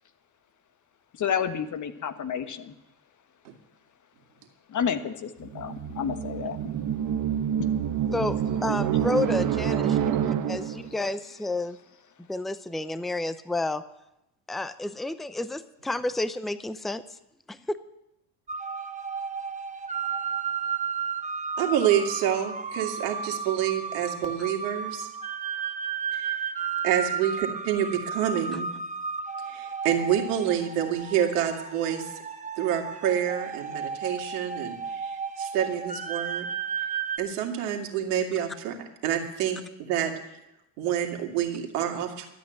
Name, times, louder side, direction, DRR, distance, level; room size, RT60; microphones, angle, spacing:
voice 1, 1.2-2.7 4.7-6.7 8.2-8.3, left 7 dB, 40° left, 9 dB, 1.4 m, -30 dB
sound 1, 5.4-10.9, right 9 dB, 45° right, 1.4 m, -27 dB
voice 2, 8.1-10.0 10.5-11.8 12.3-13.8 14.5-17.0 17.5-17.6, left 2 dB, ahead, 13 dB, 0.6 m, -30 dB
sound 2, 18.5-37.2, right 6 dB, 15° right, 1.2 m, -33 dB
voice 3, 21.6-25.1 26.1-26.4 26.8-28.7 29.5-32.2 32.6-36.5 37.2-38.8 39.0-40.1 40.8-42.3, right 10 dB, 75° right, 3 dB, 2.3 m, -28 dB
12.5 x 8.5 x 9.2 m, 0.87 s
hypercardioid pair, 70°, 46 cm